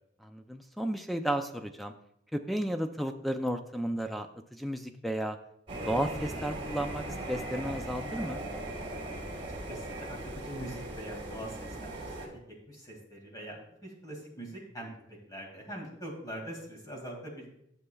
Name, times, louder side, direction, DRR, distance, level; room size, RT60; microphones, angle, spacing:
voice 1, 0.2-1.9 2.3-4.3 4.5-5.4 5.9-8.4, right 1 dB, ahead, 6 dB, 0.4 m, -33 dB
sound 1, 5.7-12.3, right 1 dB, 30° right, 2.9 m, -39 dB
voice 2, 9.7-12.4 12.7-17.5, right 1 dB, 20° left, 0 dB, 2.1 m, -43 dB
13.0 x 6.8 x 2.3 m, 0.76 s
head